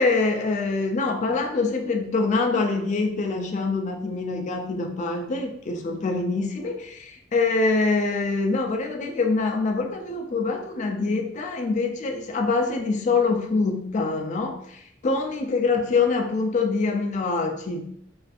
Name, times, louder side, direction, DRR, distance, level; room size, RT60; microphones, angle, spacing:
voice 1, 0.0-17.8, left 3 dB, 40° left, 4 dB, 0.3 m, -25 dB
2.5 x 2.4 x 2.3 m, 0.71 s
head